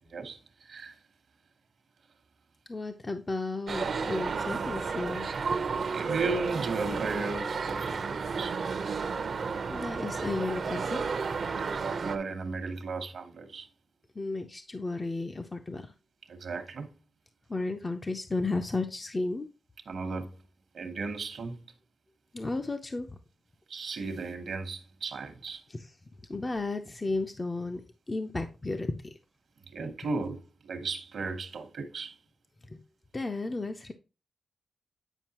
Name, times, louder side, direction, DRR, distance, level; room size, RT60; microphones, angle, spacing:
voice 1, 0.1-1.0 5.9-8.6 11.6-13.7 16.3-17.0 19.9-20.4 20.7-21.6 23.7-25.6 29.7-32.2, right 4 dB, 75° right, 1.1 m, -35 dB
voice 2, 2.7-5.6 9.7-11.0 14.1-15.9 17.5-19.5 22.3-23.2 25.7-25.9 26.3-27.8 28.1-29.2 32.7-32.8 33.1-33.9, left 3 dB, 25° left, 0.6 m, -33 dB
sound 1, 3.7-12.2, right 5 dB, 55° right, 0.7 m, -32 dB
9.0 x 5.3 x 2.9 m
wide cardioid pair, 130°, 0 cm